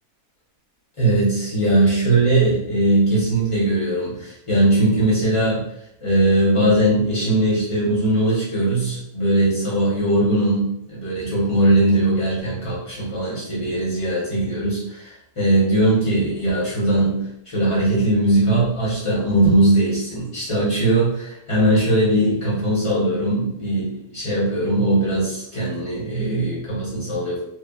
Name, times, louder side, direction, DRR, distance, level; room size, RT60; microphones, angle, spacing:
voice 1, 1.0-5.6 6.0-17.2 17.5-27.4, right 1 dB, 25° left, -8 dB, 0.7 m, -20 dB
3.2 x 2.1 x 2.3 m, 0.79 s
omnidirectional pair, 1.7 m